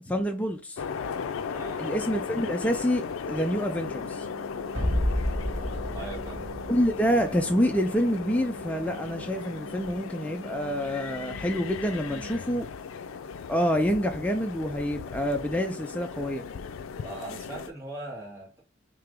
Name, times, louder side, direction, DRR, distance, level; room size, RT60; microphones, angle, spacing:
voice 1, 0.1-0.8 1.8-4.3 6.7-12.7 13.5-16.4, equal, 5° left, 0.4 m, -27 dB
sound 1, 0.8-17.7, left 6 dB, 85° left, 0.4 m, -37 dB
voice 2, 1.5-2.0 5.9-6.4 11.5-11.6 12.1-12.5 16.9-18.6, right 2 dB, 10° right, 1.7 m, -40 dB
sound 2, 3.8-12.3, right 8 dB, 55° right, 0.6 m, -47 dB
sound 3, 4.7-9.8, left 1 dB, 75° right, 1.8 m, -33 dB
3.7 x 2.8 x 3.3 m
head